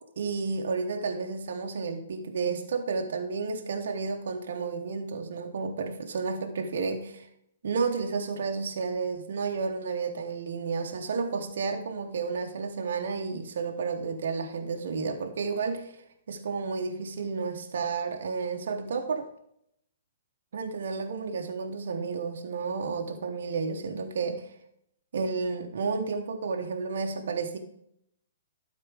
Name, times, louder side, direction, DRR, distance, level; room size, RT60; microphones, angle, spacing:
voice 1, 0.2-7.3 7.6-16.0 16.3-19.3 20.5-24.4 25.1-27.6, right 4 dB, 65° right, 4 dB, 1.0 m, -31 dB
12.0 x 4.2 x 5.0 m, 0.75 s
hypercardioid pair, 125°, 0 cm